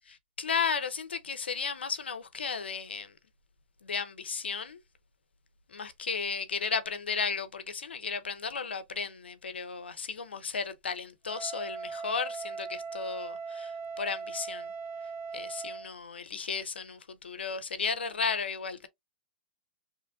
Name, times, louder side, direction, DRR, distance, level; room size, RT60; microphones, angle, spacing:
voice 1, 0.4-3.1 3.8-4.8 5.7-14.7 15.3-18.9, left 5 dB, 90° left, 0.5 m, -34 dB
Wind instrument woodwind instrument, 11.3-15.9, right 5 dB, 35° right, 1.0 m, -39 dB
3.1 x 2.2 x 2.4 m
hypercardioid pair, 120°, 6 cm